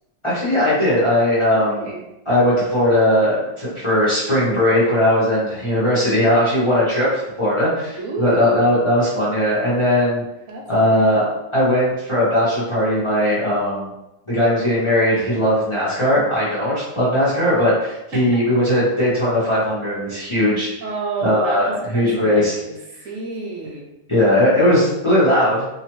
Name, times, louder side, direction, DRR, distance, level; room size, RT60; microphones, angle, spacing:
voice 1, 0.2-1.9 2.3-10.2 10.7-11.3 11.5-13.9 14.3-20.7 21.2-22.6 24.1-25.7, left 1 dB, 25° left, -10 dB, 0.9 m, -18 dB
voice 2, 1.7-2.0 8.0-9.0 10.5-11.0 18.1-18.4 20.8-22.7 23.0-23.9, right 3 dB, 85° right, 0 dB, 1.1 m, -30 dB
3.0 x 2.4 x 3.0 m, 0.92 s
omnidirectional pair, 1.3 m